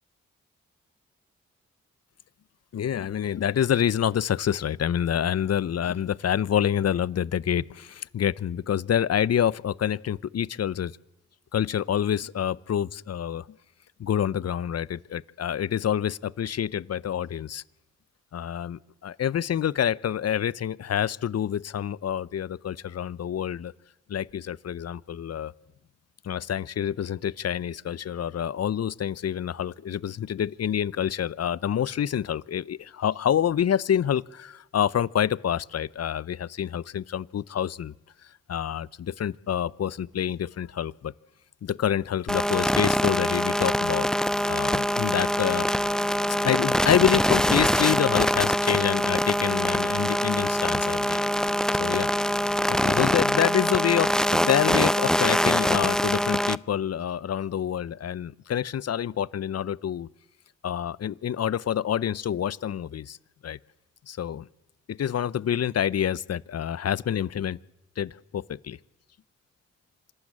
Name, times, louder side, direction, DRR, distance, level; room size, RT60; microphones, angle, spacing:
voice 1, 2.7-10.9 11.5-13.5 14.0-17.6 18.3-23.7 24.1-25.5 26.2-37.9 38.5-41.1 41.6-45.7 46.4-51.5 51.8-52.1 52.7-60.1 60.6-63.2 63.4-63.6 64.1-64.5 64.9-67.6 68.0-68.8, left 9 dB, 55° left, 22 dB, 0.7 m, -27 dB
sound 1, 42.3-56.6, equal, ahead, 0.7 m, -24 dB
26.5 x 12.0 x 8.7 m, 0.98 s
supercardioid pair, 40°, 30 cm